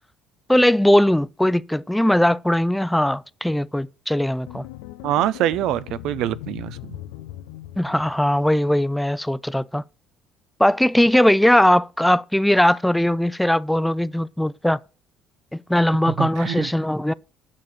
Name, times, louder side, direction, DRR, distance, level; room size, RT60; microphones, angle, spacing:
voice 1, 0.5-4.7 7.8-9.8 10.6-14.8 15.5-17.1, left 1 dB, 5° left, 0.5 m, -19 dB
sound 1, 4.5-8.7, left 14 dB, 85° left, 0.6 m, -39 dB
voice 2, 5.0-7.0 16.2-16.7, right 12 dB, 70° right, 0.6 m, -25 dB
9.9 x 6.6 x 6.3 m
hypercardioid pair, 65°, 0 cm